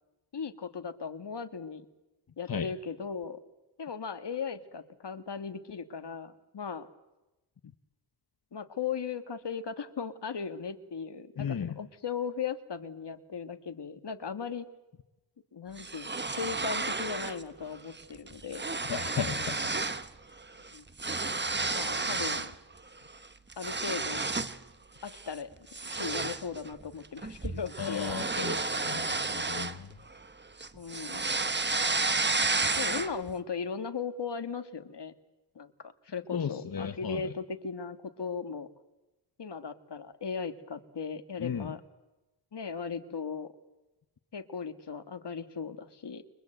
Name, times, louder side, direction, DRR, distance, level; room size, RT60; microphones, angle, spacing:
voice 1, 0.3-1.9 2.4-3.4 3.8-6.9 8.5-14.7 15.5-18.6 20.7-20.8 21.7-22.5 23.6-24.2 25.0-25.5 25.8-28.2 30.7-31.4 32.8-35.1 35.6-38.7 39.4-41.8 42.5-43.5 44.3-46.2, left 6 dB, 75° left, 9 dB, 1.9 m, -37 dB
voice 2, 11.4-11.8 18.9-19.8 27.8-29.9 36.3-37.3 41.4-41.7, left 7 dB, 55° left, 9 dB, 1.1 m, -35 dB
sound 1, 15.8-17.4 17.8-18.0 18.3-20.1 20.4-22.5 23.0-24.6 25.1-25.3 25.7-30.3 30.6-33.3, right 3 dB, 25° right, 1.1 m, -32 dB
29.5 x 24.0 x 8.0 m, 1.0 s
wide cardioid pair, 100°, 41 cm